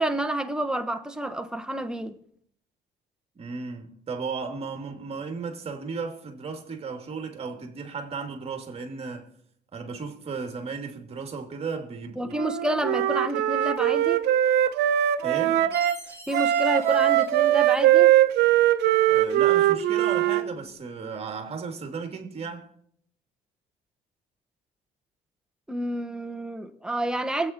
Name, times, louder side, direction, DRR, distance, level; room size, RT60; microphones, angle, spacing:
voice 1, 0.0-2.2 12.2-14.2 16.3-18.1 25.7-27.5, right 1 dB, 5° right, 1.2 m, -29 dB
voice 2, 3.4-9.3 9.7-12.3 15.2-15.7 19.1-22.7, right 5 dB, 35° right, 2.6 m, -35 dB
Wind instrument woodwind instrument, 12.4-16.0 16.3-20.5, right 13 dB, 80° right, 0.8 m, -21 dB
Chime, 15.7-18.2, left 1 dB, 15° left, 2.9 m, -46 dB
24.0 x 8.5 x 4.5 m
cardioid pair, 110°, 17 cm